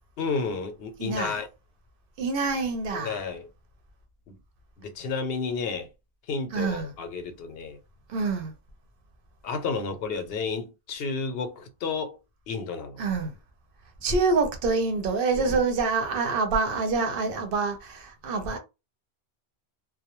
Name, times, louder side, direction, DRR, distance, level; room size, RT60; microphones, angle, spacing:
voice 1, 0.2-1.5 2.9-3.5 4.3-4.4 4.8-5.9 6.3-7.8 9.4-12.2 12.5-13.0 15.5-15.6, left 4 dB, 70° left, 0.8 m, -31 dB
voice 2, 1.0-1.4 2.2-3.2 6.5-6.9 8.1-8.5 13.0-13.3 14.0-18.6, right 4 dB, 60° right, 0.9 m, -26 dB
2.2 x 2.1 x 2.9 m
omnidirectional pair, 1.1 m